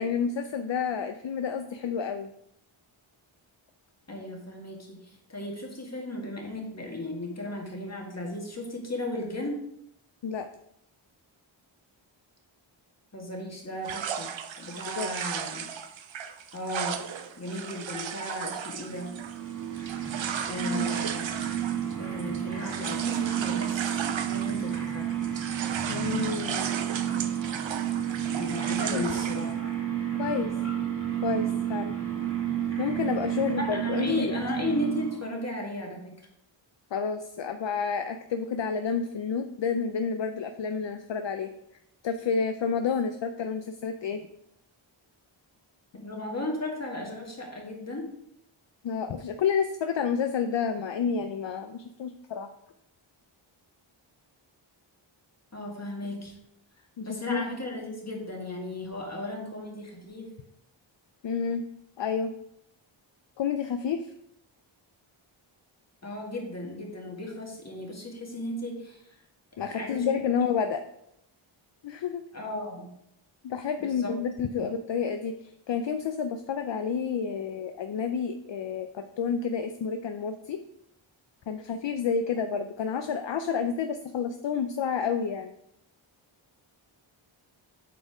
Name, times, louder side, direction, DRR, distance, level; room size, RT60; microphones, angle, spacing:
voice 1, 0.0-2.3 10.2-10.5 15.0-15.1 20.6-20.9 25.9-26.7 28.9-29.0 30.2-30.5 31.2-31.9 32.8-34.4 36.9-41.5 42.0-44.2 48.8-52.5 57.0-57.4 61.2-61.6 62.0-62.3 63.4-64.1 69.6-70.8 71.8-72.2 73.4-80.6 81.5-85.5, left 6 dB, 65° left, 8 dB, 0.6 m, -30 dB
voice 2, 4.1-9.6 13.1-14.3 14.6-15.6 16.5-17.0 17.4-19.2 20.5-21.3 22.0-25.1 28.3-29.5 33.4-36.1 46.0-48.1 55.5-56.3 57.0-60.3 66.0-69.0 69.7-70.1 72.3-72.9 73.8-74.1, left 1 dB, 30° left, 0 dB, 1.9 m, -35 dB
sound 1, 13.8-24.9 25.2-29.5, right 8 dB, 65° right, 0.7 m, -36 dB
sound 2, 18.8-35.4, right 10 dB, 40° right, 1.9 m, -31 dB
8.4 x 4.4 x 4.8 m, 0.78 s
wide cardioid pair, 110°, 49 cm